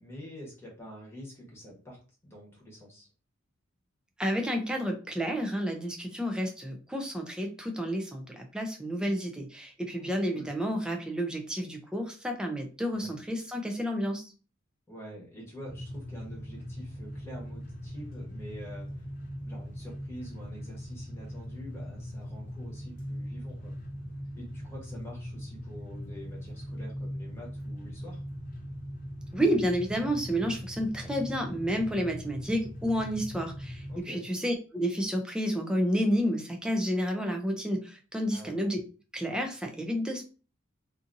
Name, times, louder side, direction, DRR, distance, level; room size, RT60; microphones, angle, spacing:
voice 1, 0.0-3.1 9.9-10.5 12.9-13.2 14.9-19.1 19.4-23.7 24.3-28.2 33.9-34.2 38.3-38.6, equal, 10° left, -3 dB, 1.0 m, -46 dB
voice 2, 4.2-14.3 29.3-38.8 39.1-40.2, equal, 5° right, 3 dB, 0.4 m, -30 dB
sound 1, 15.6-34.0, equal, 40° left, 0.6 m, -40 dB
2.7 x 2.5 x 2.5 m, 0.36 s
head